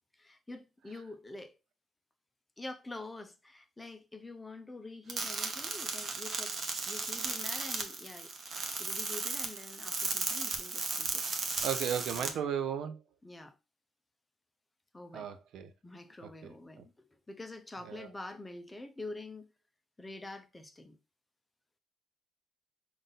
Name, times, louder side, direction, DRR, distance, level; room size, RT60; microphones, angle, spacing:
voice 1, 0.1-1.5 2.6-6.6 6.9-8.3 8.8-11.2 12.1-12.4 13.2-13.5 14.9-15.3 15.8-16.8 17.3-19.5 20.0-21.0, left 2 dB, 15° left, 0.6 m, -46 dB
sound 1, 5.1-12.3, right 4 dB, 50° right, 0.9 m, -35 dB
voice 2, 11.4-13.0 15.1-15.7 16.2-16.3 16.8-16.9 17.9-18.1, right 8 dB, 80° right, 0.5 m, -35 dB
3.7 x 2.5 x 3.8 m
cardioid pair, 90°, 0 cm